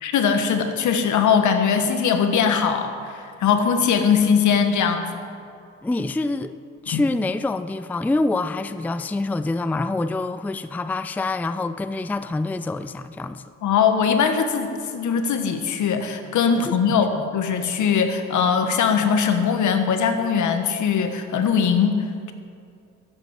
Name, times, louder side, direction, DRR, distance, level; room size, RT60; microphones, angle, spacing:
voice 1, 0.0-5.1 6.9-7.0 13.6-22.0, left 6 dB, 75° left, 7 dB, 1.4 m, -21 dB
voice 2, 5.8-6.5 6.8-13.4 16.5-17.2, left 2 dB, 5° left, 12 dB, 0.4 m, -26 dB
13.5 x 8.0 x 8.2 m, 2.4 s
cardioid pair, 90°, 30 cm